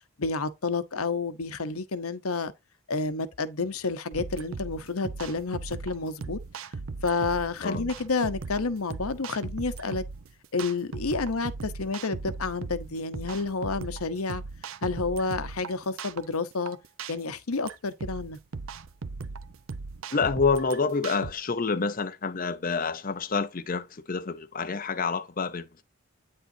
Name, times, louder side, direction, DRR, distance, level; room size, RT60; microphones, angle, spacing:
voice 1, 0.2-2.5 2.9-6.4 7.0-10.0 10.5-14.4 14.8-16.8 17.1-18.4, left 4 dB, 80° left, 0.9 m, -30 dB
sound 1, 4.1-21.3, right 4 dB, 70° right, 0.7 m, -38 dB
voice 2, 20.1-25.8, left 4 dB, 40° left, 0.6 m, -28 dB
9.2 x 6.6 x 2.7 m
head